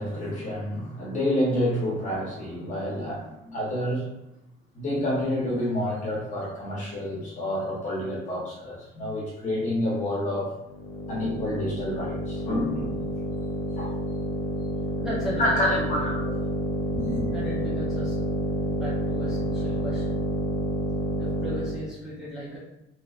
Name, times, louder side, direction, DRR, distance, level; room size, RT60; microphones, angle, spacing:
voice 1, 0.0-4.1 4.7-10.5 11.1-13.1 13.8-13.9 15.3-16.4 16.9-17.2, left 1 dB, 35° left, -4 dB, 1.0 m, -28 dB
sound 1, 10.7-21.9, equal, 80° left, 0.6 m, -29 dB
voice 2, 15.0-15.5 15.9-16.0 17.3-18.3 18.6-20.2 21.2-22.6, equal, 5° right, -7 dB, 0.5 m, -36 dB
3.0 x 3.0 x 2.4 m, 0.89 s
cardioid pair, 170°, 21 cm